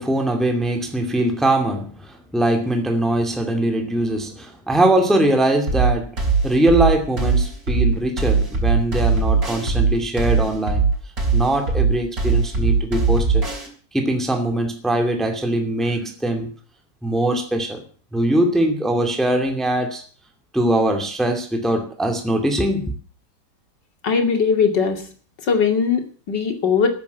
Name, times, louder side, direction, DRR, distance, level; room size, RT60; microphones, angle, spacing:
voice 1, 0.0-6.2 6.4-10.9 11.3-13.4 13.9-16.5 17.0-17.8 18.1-20.0 20.5-22.9, right 1 dB, ahead, 4 dB, 2.2 m, -21 dB
sound 1, 5.7-13.7, right 4 dB, 50° right, 4.5 m, -20 dB
voice 2, 24.0-25.0 25.5-26.9, left 6 dB, 65° left, 5 dB, 3.1 m, -19 dB
12.5 x 10.5 x 8.2 m, 0.43 s
omnidirectional pair, 2.1 m